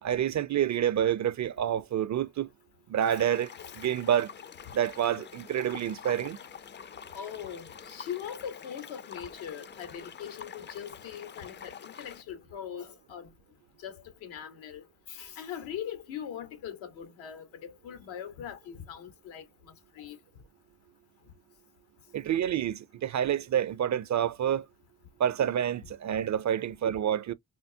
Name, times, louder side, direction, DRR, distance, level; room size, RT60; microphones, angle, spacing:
voice 1, 0.0-2.5 2.9-3.5 3.8-4.3 4.7-6.4 22.1-24.7 25.2-27.3, right 10 dB, 40° right, 0.4 m, -28 dB
sound 1, 3.0-12.2, left 7 dB, 25° left, 0.4 m, -46 dB
voice 2, 7.1-13.3 13.8-20.2 26.6-26.7, left 9 dB, 85° left, 1.2 m, -41 dB
4.3 x 2.0 x 2.7 m
hypercardioid pair, 45°, 45 cm